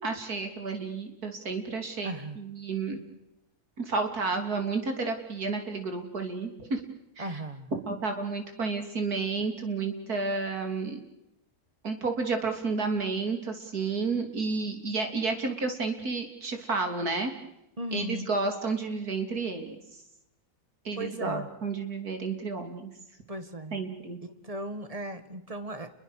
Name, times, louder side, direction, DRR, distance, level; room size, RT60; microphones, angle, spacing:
voice 1, 0.0-3.0 3.8-6.8 7.2-7.4 7.9-11.0 11.8-17.3 17.9-19.8 20.9-22.9 23.7-24.2, right 4 dB, 80° right, 5 dB, 3.7 m, -31 dB
voice 2, 2.0-2.4 7.2-7.7 17.8-18.3 21.0-21.5 23.3-23.8 24.2-25.9, right 1 dB, 25° right, 10 dB, 1.8 m, -37 dB
30.0 x 22.0 x 6.6 m, 0.88 s
omnidirectional pair, 1.6 m